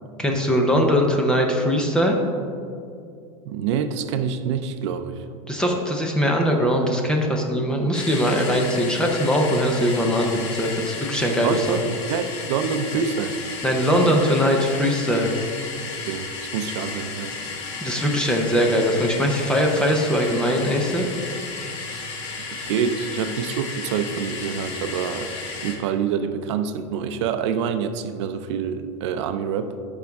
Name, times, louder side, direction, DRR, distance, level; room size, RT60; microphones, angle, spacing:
voice 1, 0.2-2.2 5.5-11.8 13.6-15.3 17.8-21.1, equal, 5° left, 1 dB, 0.6 m, -21 dB
voice 2, 3.5-5.2 11.4-13.4 16.1-16.3 16.5-17.4 22.6-25.3 25.6-29.7, right 7 dB, 60° right, 9 dB, 0.5 m, -26 dB
sound 1, 7.9-25.8, left 4 dB, 65° left, 1.6 m, -33 dB
13.0 x 5.3 x 3.5 m, 2.4 s
supercardioid pair, 170°, 17 cm